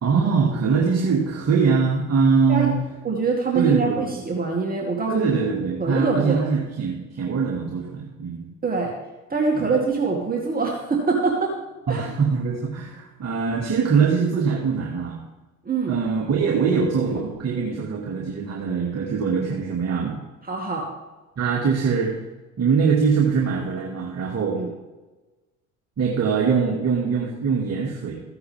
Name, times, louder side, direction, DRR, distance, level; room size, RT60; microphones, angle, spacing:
voice 1, 0.0-2.8 3.6-4.1 5.1-8.5 9.5-9.6 11.9-15.2 15.9-20.2 21.4-22.1 22.6-24.6 26.0-28.2, right 5 dB, 40° right, -2 dB, 2.2 m, -22 dB
voice 2, 3.0-5.3 5.8-6.4 8.6-8.9 9.3-11.5 11.9-12.1 15.6-16.0 20.4-20.9 24.5-24.7, right 4 dB, 20° right, -2 dB, 2.3 m, -24 dB
15.0 x 9.5 x 3.5 m, 1.2 s
hypercardioid pair, 65°, 40 cm